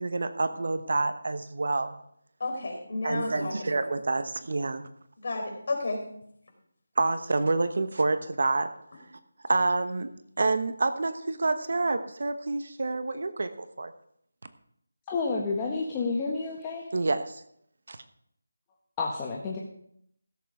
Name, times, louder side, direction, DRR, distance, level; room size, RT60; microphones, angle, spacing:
voice 1, 0.0-2.0 3.0-4.8 7.0-8.7 9.5-10.1 10.4-13.9 16.9-17.4 17.9-18.0, right 3 dB, 55° right, 10 dB, 1.1 m, -28 dB
voice 2, 2.4-3.5 5.2-6.0, left 2 dB, 45° left, 1 dB, 4.7 m, -31 dB
voice 3, 15.1-16.8 19.0-19.6, left 4 dB, 15° left, -2 dB, 1.2 m, -30 dB
16.5 x 8.1 x 4.9 m, 0.70 s
figure-of-eight pair, 170°, 0 cm